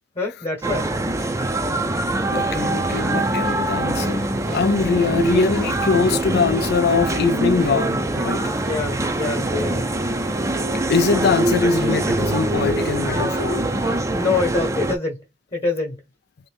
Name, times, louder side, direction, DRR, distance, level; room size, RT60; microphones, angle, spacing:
voice 1, 0.1-0.9 1.3-1.6 8.6-9.8 13.0-13.3 14.1-15.2 15.5-16.0, left 3 dB, 30° left, 1.1 m, -26 dB
sound 1, 0.6-15.0, right 2 dB, 15° right, 0.5 m, -23 dB
voice 2, 2.3-4.3 4.5-8.4 10.9-13.7, left 5 dB, 60° left, 0.4 m, -22 dB
sound 2, 2.6-14.0, right 1 dB, 60° right, 0.8 m, -34 dB
3.8 x 2.8 x 3.3 m
head